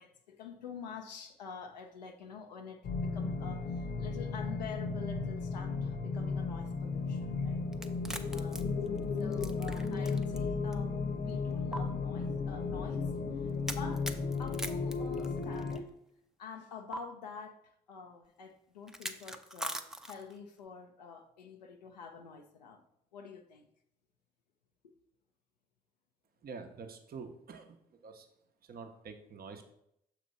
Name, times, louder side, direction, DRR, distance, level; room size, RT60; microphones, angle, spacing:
voice 1, 0.0-7.6 8.3-8.7 9.2-11.0 11.2-15.9 16.4-22.8 23.1-23.7 24.8-25.0, left 6 dB, 90° left, 0.4 m, -47 dB
sound 1, 2.8-15.8, left 4 dB, 50° left, 0.8 m, -35 dB
sound 2, 7.7-10.4 10.7-10.8 11.7-11.8 13.7-15.8 16.9-17.0 18.9-20.4, right 1 dB, ahead, 0.5 m, -41 dB
voice 2, 26.4-28.3 28.6-29.7, right 5 dB, 45° right, 0.8 m, -47 dB
6.7 x 2.9 x 5.4 m
figure-of-eight pair, 40°, 21 cm